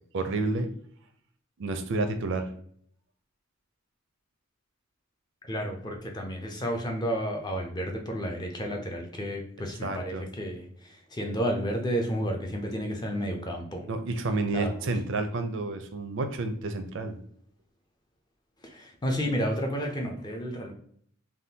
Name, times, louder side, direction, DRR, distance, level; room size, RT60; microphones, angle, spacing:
voice 1, 0.1-0.7 1.6-2.5 9.8-10.2 13.9-17.1, right 3 dB, 60° right, 7 dB, 0.5 m, -30 dB
voice 2, 5.4-13.9 14.5-14.9 18.6-20.7, equal, 20° left, 2 dB, 0.4 m, -31 dB
3.5 x 2.3 x 2.7 m, 0.63 s
head